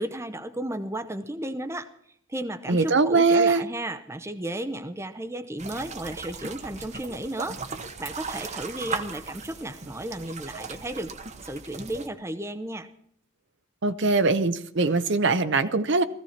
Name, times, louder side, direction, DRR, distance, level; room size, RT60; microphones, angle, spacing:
voice 1, 0.0-1.9 2.3-7.6 8.0-11.1 11.4-12.9, right 1 dB, 15° right, 0.7 m, -33 dB
voice 2, 2.7-3.6 13.8-16.0, right 3 dB, 55° right, 0.8 m, -21 dB
sound 1, 5.6-12.1, right 5 dB, 35° right, 1.0 m, -37 dB
16.5 x 15.5 x 4.3 m
head